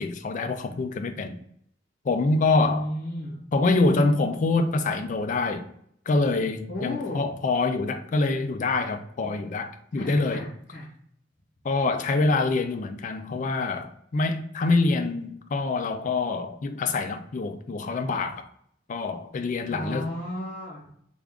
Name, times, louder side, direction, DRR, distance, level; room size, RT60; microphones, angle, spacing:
voice 1, 0.0-1.4 2.0-2.9 3.5-5.7 6.1-10.4 11.6-18.5 18.9-20.1, left 3 dB, 40° left, 0.4 m, -25 dB
voice 2, 2.5-3.4 6.7-7.4 9.9-10.9 19.7-20.9, equal, 70° left, 0.8 m, -33 dB
3.5 x 2.4 x 3.4 m
head